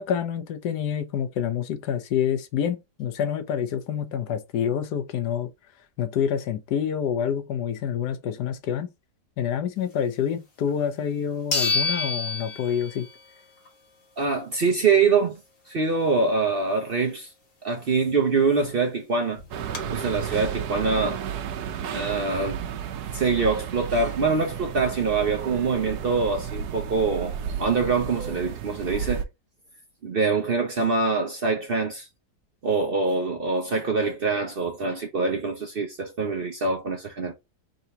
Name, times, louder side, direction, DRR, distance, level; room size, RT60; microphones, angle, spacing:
voice 1, 0.0-5.5 6.0-8.9 9.4-13.1, left 8 dB, 85° left, 1.3 m, -27 dB
sound 1, 10.7-10.8 11.5-13.3 13.7-13.8 18.4-18.5 18.7-18.8 19.3-19.8, left 3 dB, 40° left, 1.4 m, -27 dB
voice 2, 14.2-15.4 15.7-17.3 17.6-19.4 19.9-21.2 21.9-22.6 23.1-29.2 30.0-32.1 32.6-37.3, right 4 dB, 50° right, 0.7 m, -24 dB
sound 2, 19.5-29.2, right 8 dB, 75° right, 1.2 m, -33 dB
3.9 x 2.8 x 4.5 m
omnidirectional pair, 1.7 m